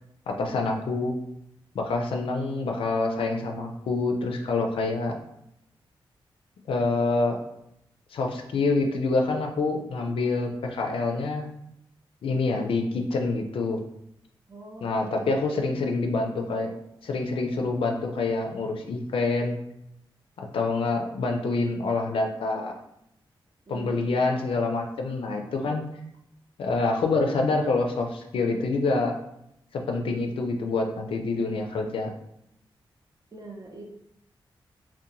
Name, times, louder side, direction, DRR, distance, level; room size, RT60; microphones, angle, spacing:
voice 1, 0.4-1.1 1.7-5.2 6.7-7.4 8.1-11.5 12.2-13.8 14.8-16.7 17.0-19.6 20.4-22.7 23.7-25.8 26.6-29.1 29.7-32.1, left 3 dB, 75° left, 3 dB, 0.4 m, -26 dB
voice 2, 12.3-12.8 14.5-15.4 20.6-21.2 23.7-24.3 33.3-33.8, right 1 dB, 40° right, 1 dB, 0.6 m, -43 dB
2.5 x 2.1 x 2.8 m, 0.80 s
cardioid pair, 65°, 9 cm